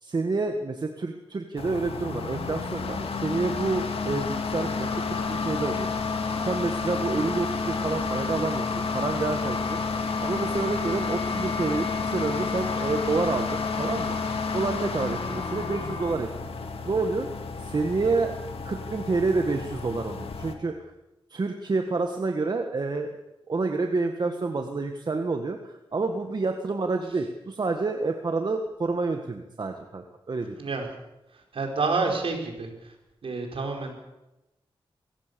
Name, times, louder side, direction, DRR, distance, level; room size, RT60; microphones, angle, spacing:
voice 1, 0.0-5.9 6.4-14.2 14.5-16.3 16.8-17.3 17.6-18.3 18.6-20.9 21.3-23.2 23.5-30.5, right 3 dB, 45° right, 5 dB, 1.7 m, -28 dB
sound 1, 1.6-20.5, left 4 dB, 75° left, 2.3 m, -31 dB
sound 2, 4.8-16.2, left 4 dB, 55° left, 3.2 m, -38 dB
voice 2, 30.5-30.9 31.5-32.7 33.2-33.9, right 3 dB, 65° right, 2 dB, 5.2 m, -28 dB
23.0 x 17.5 x 7.0 m, 0.95 s
wide cardioid pair, 100°, 10 cm